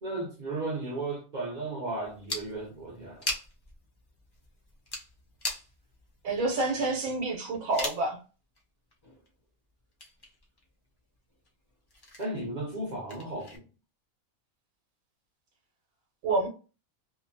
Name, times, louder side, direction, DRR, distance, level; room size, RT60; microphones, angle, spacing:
voice 1, 0.0-3.3 12.2-13.6, right 2 dB, 45° right, 0.7 m, -35 dB
sound 1, 2.0-8.1 8.5-8.6 8.9-9.4 9.7-10.7 11.0-13.6, left 1 dB, 35° left, 0.3 m, -40 dB
voice 2, 6.2-8.2 16.2-16.5, right 2 dB, 75° right, 1.1 m, -28 dB
2.7 x 2.1 x 2.6 m
omnidirectional pair, 1.5 m